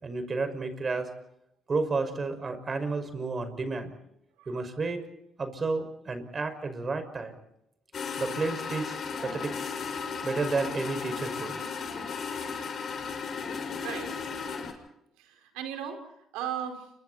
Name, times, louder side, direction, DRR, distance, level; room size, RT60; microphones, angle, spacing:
voice 1, 0.0-1.1 1.7-3.9 4.5-5.0 5.4-7.4 8.2-9.5 10.2-11.6, right 3 dB, 35° right, 9 dB, 5.9 m, -31 dB
voice 2, 4.4-4.7 11.8-12.1 13.8-14.1 15.2-16.9, right 9 dB, 90° right, 5 dB, 5.0 m, -38 dB
sound 1, 7.9-14.7, left 5 dB, 55° left, 7.0 m, -35 dB
30.0 x 25.5 x 4.4 m, 0.81 s
supercardioid pair, 70°, 0 cm